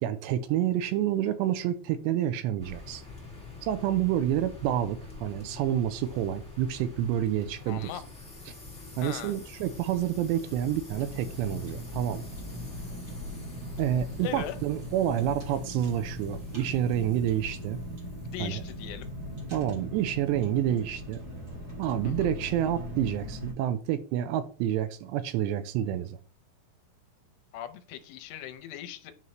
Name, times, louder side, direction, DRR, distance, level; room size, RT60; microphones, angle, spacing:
voice 1, 0.0-3.0 3.6-7.9 9.0-12.2 13.8-17.8 18.4-18.6 19.5-21.2 21.8-26.2, right 11 dB, 85° right, 2.8 m, -28 dB
sound 1, 2.6-19.4, left 3 dB, 5° left, 1.2 m, -47 dB
voice 2, 7.7-8.0 9.0-9.4 14.2-14.6 18.3-19.1 22.0-22.3 27.5-29.1, left 11 dB, 80° left, 2.8 m, -39 dB
Car, 10.9-23.5, left 1 dB, 30° right, 1.9 m, -39 dB
9.7 x 5.3 x 3.1 m
omnidirectional pair, 5.0 m